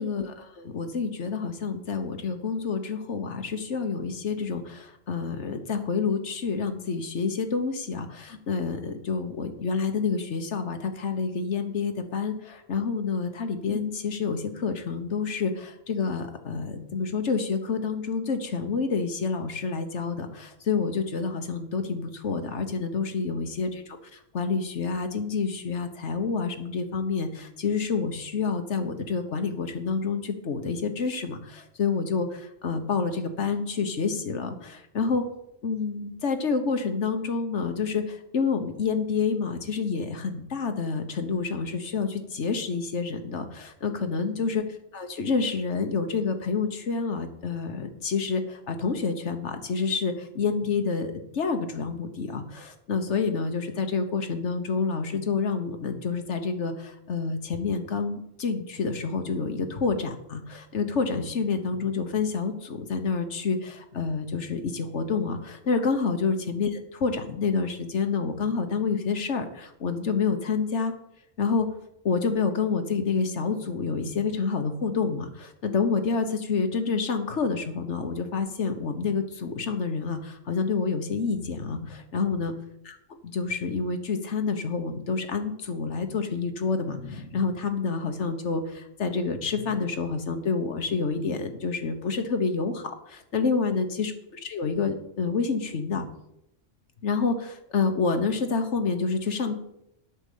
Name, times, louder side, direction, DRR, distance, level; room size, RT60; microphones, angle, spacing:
voice 1, 0.0-35.2 35.6-44.6 44.9-70.9 71.4-71.7 72.0-82.5 82.8-83.0 83.2-96.1 97.0-99.6, left 5 dB, 70° left, 7 dB, 1.5 m, -28 dB
8.6 x 6.9 x 8.4 m, 0.81 s
omnidirectional pair, 1.3 m